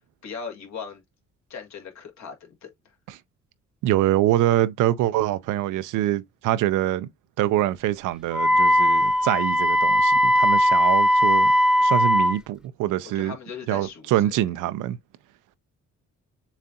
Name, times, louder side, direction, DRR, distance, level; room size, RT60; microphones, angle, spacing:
voice 1, 0.2-1.0 1.5-3.0 13.0-14.3, left 6 dB, 65° left, 1.7 m, -39 dB
voice 2, 3.8-7.1 7.4-11.5 11.8-13.4 13.7-15.0, right 13 dB, 90° right, 0.6 m, -24 dB
Wind instrument woodwind instrument, 8.3-12.4, equal, 5° right, 0.5 m, -19 dB
7.2 x 2.5 x 2.7 m
cardioid pair, 90°, 30 cm